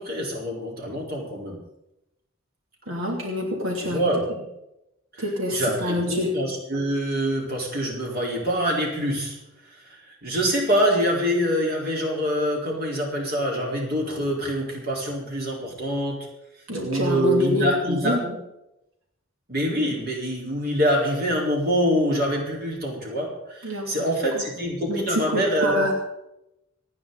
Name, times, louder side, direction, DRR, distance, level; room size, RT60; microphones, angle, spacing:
voice 1, 0.0-1.6 3.8-4.2 5.1-5.2 5.5-9.4 9.7-16.3 16.8-18.2 19.5-25.9, equal, 50° right, -1 dB, 4.2 m, -25 dB
voice 2, 2.9-4.4 5.2-6.4 16.7-18.4 23.6-23.9 24.3-24.4 24.9-25.9, left 1 dB, 85° right, 0 dB, 2.7 m, -27 dB
27.0 x 9.5 x 4.0 m, 0.87 s
head